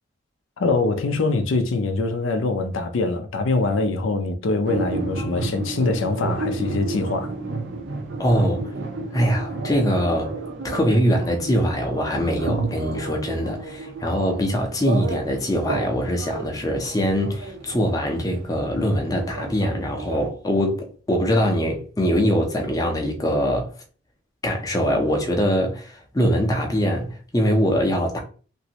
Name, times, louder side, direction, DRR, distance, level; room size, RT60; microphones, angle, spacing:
voice 1, 0.6-7.3, left 3 dB, 70° left, 0.4 m, -23 dB
sound 1, 4.6-20.3, right 3 dB, 60° right, 0.5 m, -32 dB
voice 2, 8.2-8.7 9.1-10.3 10.6-23.7 24.4-28.2, equal, 15° left, 0.5 m, -23 dB
3.0 x 2.6 x 2.8 m
head